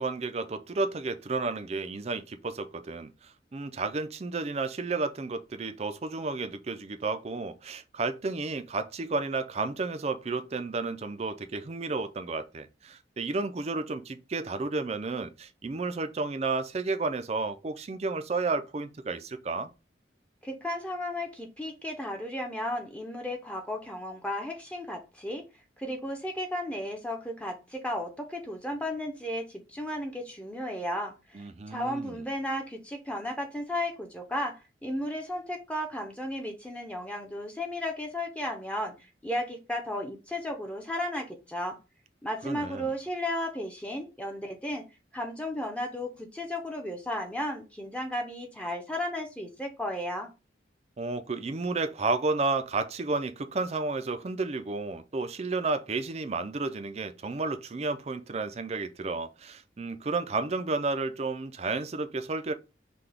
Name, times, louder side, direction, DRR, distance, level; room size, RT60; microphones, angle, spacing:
voice 1, 0.0-19.7 31.3-32.2 42.4-42.9 51.0-62.5, right 3 dB, 35° right, 0.4 m, -32 dB
voice 2, 20.4-25.4 25.8-38.9 39.2-41.8 42.2-44.8 45.1-50.3, left 1 dB, 5° left, 0.6 m, -34 dB
5.7 x 2.3 x 3.4 m
head